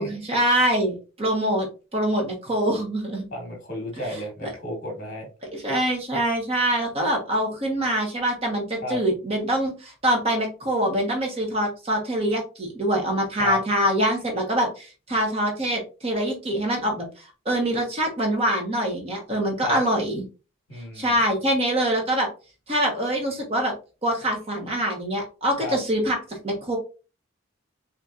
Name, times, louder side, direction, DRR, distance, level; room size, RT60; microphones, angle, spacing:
voice 1, 0.0-1.7 1.9-3.2 4.4-4.5 5.5-20.2 21.0-22.3 22.7-23.7 24.0-26.2 26.4-26.8, right 1 dB, 30° right, 1 dB, 1.0 m, -24 dB
voice 2, 3.3-5.3 8.8-9.0 13.3-13.6 19.6-19.8 20.7-21.2 25.6-25.8, left 2 dB, 40° left, 1 dB, 1.3 m, -32 dB
4.1 x 2.8 x 2.4 m, 0.33 s
head